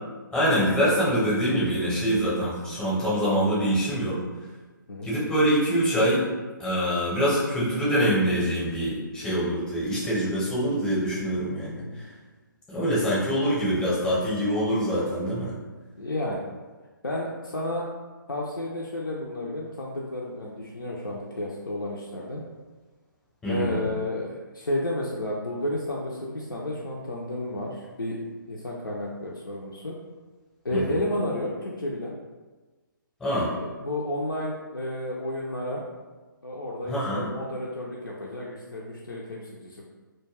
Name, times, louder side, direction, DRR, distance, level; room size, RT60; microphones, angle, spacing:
voice 1, 0.3-4.2 5.1-6.3 6.6-11.8 12.7-15.5 23.4-23.8 30.7-31.0 33.2-33.5 36.9-37.3, equal, 5° left, -9 dB, 0.7 m, -24 dB
voice 2, 11.7-12.0 16.0-16.5 17.0-17.8 18.3-22.4 23.5-28.2 28.5-29.9 30.6-32.1 33.5-35.8 36.4-39.8, left 1 dB, 80° left, -4 dB, 0.4 m, -31 dB
2.2 x 2.2 x 3.2 m, 1.3 s
figure-of-eight pair, 135°, 11 cm